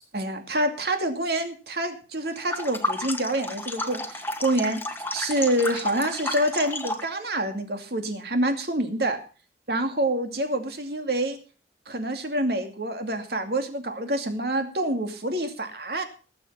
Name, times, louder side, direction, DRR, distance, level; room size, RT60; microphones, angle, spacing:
voice 1, 0.1-4.8 5.1-9.2 9.7-11.4 11.9-16.0, right 1 dB, 60° right, 6 dB, 2.5 m, -27 dB
sound 1, 2.4-7.1, left 2 dB, 10° left, 1.3 m, -32 dB
19.5 x 7.7 x 5.6 m, 0.37 s
head